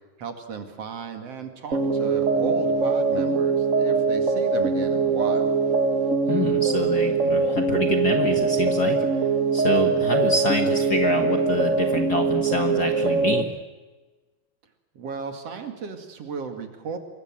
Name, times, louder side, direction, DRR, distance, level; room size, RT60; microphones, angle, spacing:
voice 1, 0.2-5.5 14.9-17.0, right 5 dB, 55° right, 6 dB, 3.2 m, -35 dB
sound 1, 1.7-13.4, right 4 dB, 35° right, 1.3 m, -22 dB
voice 2, 6.3-9.0 9.5-13.5, left 4 dB, 45° left, 5 dB, 1.5 m, -27 dB
26.5 x 23.5 x 7.7 m, 1.2 s
omnidirectional pair, 3.3 m